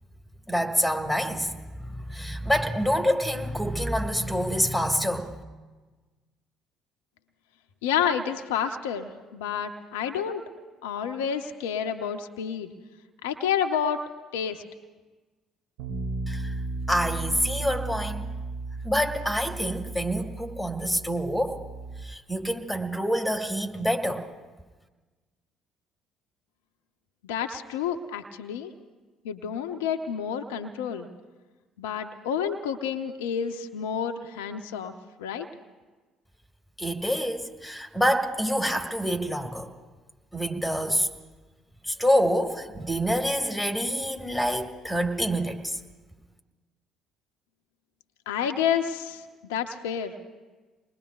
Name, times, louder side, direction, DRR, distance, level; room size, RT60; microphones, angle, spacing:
voice 1, 0.5-5.4 16.3-16.5 16.9-18.3 18.8-21.6 22.0-24.3 36.8-39.7 40.3-41.1 41.9-45.8, equal, ahead, 1.8 m, -27 dB
voice 2, 7.8-10.4 10.8-12.7 13.2-14.0 14.3-14.6 27.2-28.7 29.2-31.1 31.8-34.9 35.2-35.5 48.3-50.1, left 8 dB, 75° left, 0.7 m, -29 dB
Bass guitar, 15.8-22.0, right 3 dB, 70° right, 2.4 m, -35 dB
28.5 x 20.5 x 2.4 m
figure-of-eight pair, 50°, 0 cm